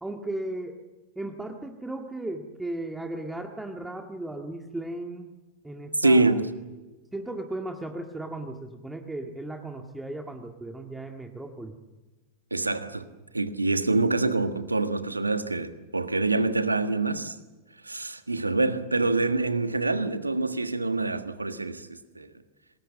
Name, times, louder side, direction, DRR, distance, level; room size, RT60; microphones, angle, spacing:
voice 1, 0.0-0.8 1.2-5.4 5.6-6.4 7.1-11.8, right 1 dB, 5° right, 1.8 m, -36 dB
voice 2, 6.0-6.5 12.5-13.1 13.3-17.3 17.8-22.3, right 3 dB, 80° right, 1.5 m, -25 dB
26.5 x 20.5 x 7.6 m
figure-of-eight pair, 90°, 0 cm